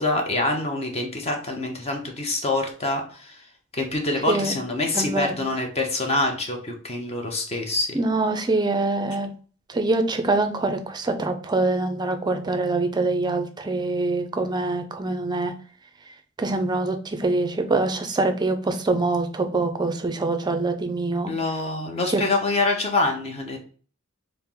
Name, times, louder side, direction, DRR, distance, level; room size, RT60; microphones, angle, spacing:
voice 1, 0.0-3.4 3.7-8.0 21.3-23.6, left 2 dB, 30° left, 2 dB, 0.7 m, -25 dB
voice 2, 4.9-5.3 7.9-9.3 9.7-15.5 16.4-21.3 22.1-22.2, right 2 dB, 20° right, 7 dB, 0.4 m, -24 dB
4.3 x 2.0 x 3.6 m, 0.41 s
head